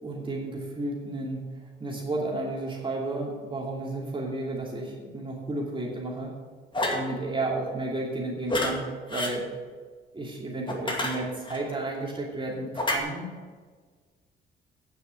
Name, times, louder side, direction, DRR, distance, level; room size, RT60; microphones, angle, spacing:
voice 1, 0.0-1.4 1.8-6.3 6.9-9.5 10.1-13.3, right 2 dB, 25° right, -3 dB, 2.7 m, -32 dB
sound 1, 6.7-7.1 8.5-8.7 9.1-9.4 10.7-11.6 12.8-13.0, left 1 dB, 25° left, 2.2 m, -28 dB
9.3 x 7.0 x 8.5 m, 1.5 s
cardioid pair, 90°, 20 cm